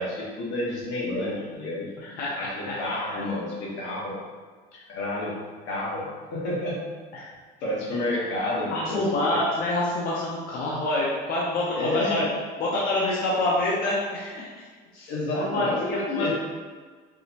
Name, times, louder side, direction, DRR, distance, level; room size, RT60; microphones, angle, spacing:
voice 1, 0.0-1.9 2.3-4.2 4.9-5.4 5.6-6.8 7.6-9.4 11.8-12.2 15.1-16.3, left 1 dB, 80° left, -5 dB, 1.1 m, -30 dB
voice 2, 2.0-2.8 3.1-3.2 7.2-7.3 8.7-12.2 12.6-14.7 14.9-15.1 15.4-16.3, left 2 dB, 50° left, -5 dB, 0.6 m, -27 dB
4.8 x 2.0 x 2.8 m, 1.5 s
cardioid pair, 160°, 19 cm